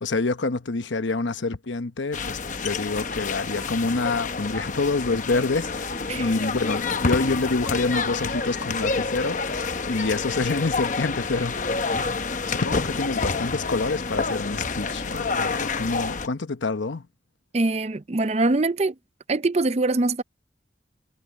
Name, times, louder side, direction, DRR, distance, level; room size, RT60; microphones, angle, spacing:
voice 1, 0.0-11.8 12.5-17.1, left 3 dB, 80° left, 1.0 m, -27 dB
sound 1, 2.1-16.3, left 4 dB, 45° left, 0.9 m, -28 dB
voice 2, 17.5-19.0 19.3-20.2, right 2 dB, 35° right, 0.5 m, -23 dB
head